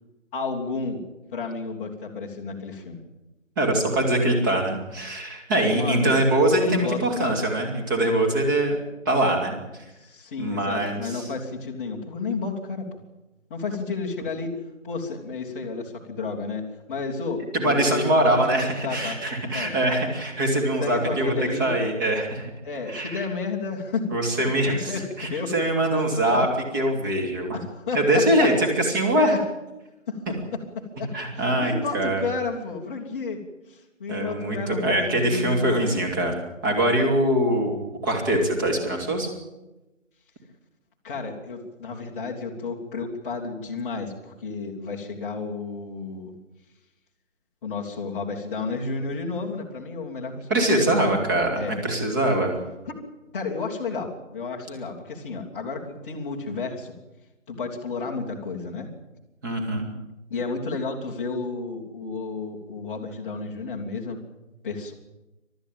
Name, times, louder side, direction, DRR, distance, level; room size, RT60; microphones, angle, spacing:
voice 1, 0.3-1.0 1.3-3.0 5.7-6.2 6.5-7.4 10.0-13.0 13.5-14.5 14.8-19.2 19.5-19.7 20.8-21.7 22.6-24.1 24.4-25.5 26.3-26.4 27.5-28.5 29.1-29.4 30.1-30.2 30.5-30.6 31.0-31.1 31.3-33.4 33.7-35.9 41.0-46.3 47.6-51.3 51.5-51.7 52.8-53.0 53.3-56.9 57.5-58.9 60.3-64.2 64.6-64.9, left 4 dB, 10° left, -5 dB, 1.6 m, -32 dB
voice 2, 3.6-8.8 9.1-9.5 10.4-11.2 17.5-21.3 21.6-22.5 22.9-23.2 24.1-26.5 26.7-27.6 27.9-29.3 31.1-32.2 34.1-36.4 36.6-37.8 38.0-39.3 50.5-52.6 59.4-59.9, right 1 dB, 15° right, 2 dB, 2.7 m, -23 dB
28.5 x 13.0 x 8.9 m, 1.0 s
figure-of-eight pair, 160°, 39 cm